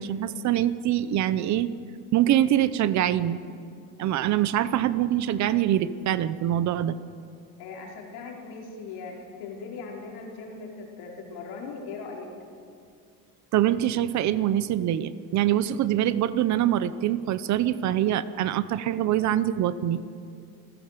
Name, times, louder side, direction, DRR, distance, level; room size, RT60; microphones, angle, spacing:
voice 1, 0.0-1.7 2.1-3.4 4.0-7.0 13.5-20.0, right 12 dB, 50° right, 15 dB, 0.8 m, -24 dB
voice 2, 7.6-12.3, left 4 dB, 85° left, -1 dB, 4.7 m, -39 dB
27.0 x 15.5 x 6.8 m, 2.4 s
cardioid pair, 165°, 37 cm